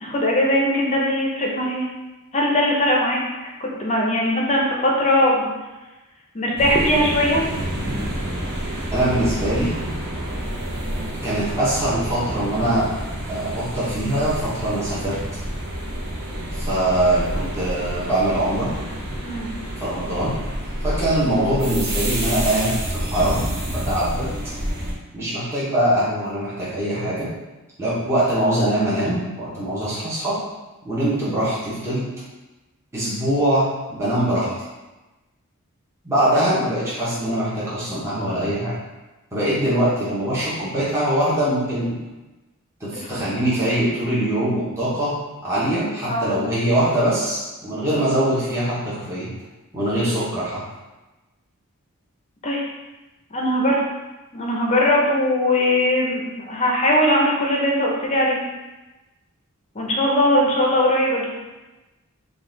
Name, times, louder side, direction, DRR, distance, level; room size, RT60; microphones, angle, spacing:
voice 1, 0.0-1.9 2.3-3.2 3.6-5.5 6.3-7.4 19.2-19.5 43.1-43.2 46.1-46.3 52.4-52.6 53.3-53.8 54.3-58.4 59.7-61.3, left 1 dB, 30° left, -2 dB, 0.7 m, -20 dB
sound 1, 6.6-24.9, equal, 50° right, 0.8 m, -28 dB
voice 2, 8.9-9.7 11.2-12.9 13.3-15.2 16.6-18.7 19.8-20.3 20.8-24.3 25.1-27.3 27.8-30.4 30.8-32.0 32.9-34.5 36.0-38.7 39.3-42.0 42.8-45.1 45.4-49.3 49.7-50.6, right 1 dB, 10° right, -10 dB, 1.0 m, -22 dB
3.9 x 2.4 x 3.9 m, 1.1 s
head